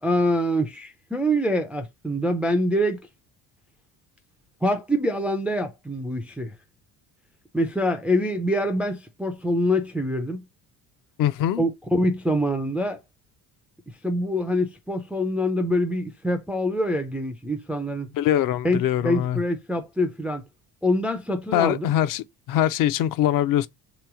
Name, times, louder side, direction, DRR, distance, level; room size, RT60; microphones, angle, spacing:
voice 1, 0.0-3.0 4.6-6.5 7.5-10.4 11.6-13.0 14.0-18.1 18.6-20.5 20.8-21.9, equal, 5° right, 0.3 m, -25 dB
voice 2, 11.2-11.7 18.1-19.4 21.5-23.7, left 12 dB, 60° left, 0.5 m, -23 dB
3.4 x 3.0 x 4.7 m
cardioid pair, 160°, 38 cm